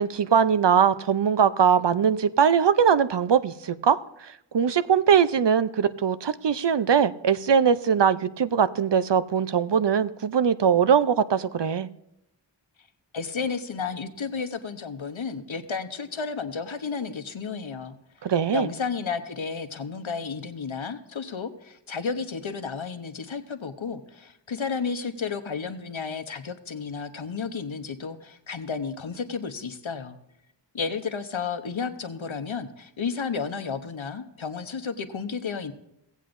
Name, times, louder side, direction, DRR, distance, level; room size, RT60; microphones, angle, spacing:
voice 1, 0.0-4.0 4.2-11.9 18.2-18.7, right 7 dB, 65° right, 14 dB, 0.6 m, -21 dB
voice 2, 13.1-17.9 18.5-30.2 30.7-35.7, left 5 dB, 80° left, 9 dB, 0.9 m, -32 dB
17.5 x 8.2 x 2.6 m, 0.81 s
wide cardioid pair, 40°, 47 cm